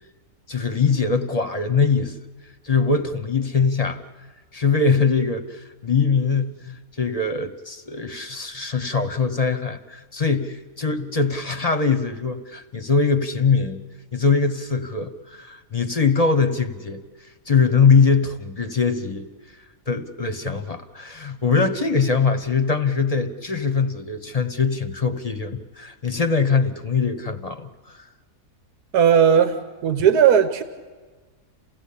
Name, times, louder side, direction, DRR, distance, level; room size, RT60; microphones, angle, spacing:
voice 1, 0.5-2.2 2.6-4.0 4.5-13.8 14.1-17.0 17.5-19.3 19.9-28.1, left 5 dB, 30° left, 9 dB, 0.9 m, -22 dB
voice 2, 28.9-30.6, right 8 dB, 85° right, 8 dB, 1.5 m, -17 dB
28.5 x 16.0 x 8.6 m, 1.4 s
omnidirectional pair, 1.6 m